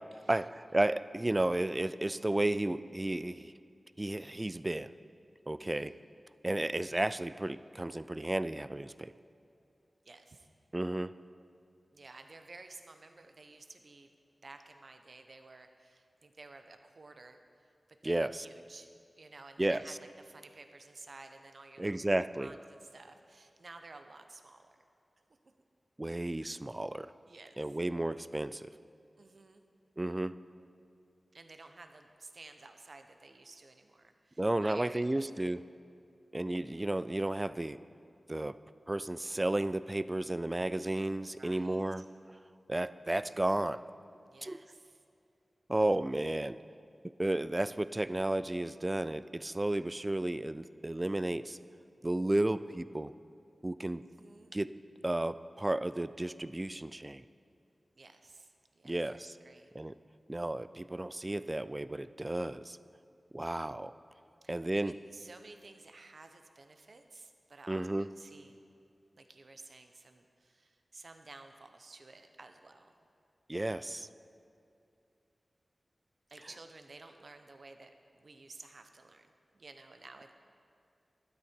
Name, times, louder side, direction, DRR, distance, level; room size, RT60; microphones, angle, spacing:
voice 1, 0.3-3.5 4.0-4.9 5.5-5.9 6.4-9.1 10.7-11.1 18.0-18.5 19.6-20.0 21.8-22.5 26.0-27.1 27.6-28.7 30.0-30.4 34.4-35.6 36.3-37.8 38.3-38.6 38.9-42.1 42.7-43.8 44.4-44.6 45.7-46.6 47.2-51.6 52.0-53.1 53.6-54.0 54.5-54.7 55.0-57.2 58.8-59.4 59.7-59.9 60.3-62.8 63.3-63.9 64.5-64.9 67.7-68.1 73.5-74.1, right 1 dB, 25° right, 15 dB, 0.3 m, -33 dB
voice 2, 5.6-6.0 10.0-10.5 11.9-14.1 14.4-17.4 18.0-18.9 19.2-22.0 22.4-24.8 27.3-27.6 29.2-29.6 31.3-35.3 41.4-42.0 44.3-45.0 54.0-54.5 58.0-59.7 64.4-68.6 69.1-72.9 76.3-80.3, right 3 dB, 65° right, 7 dB, 0.8 m, -53 dB
12.0 x 9.9 x 4.5 m, 2.6 s
wide cardioid pair, 75°, 0 cm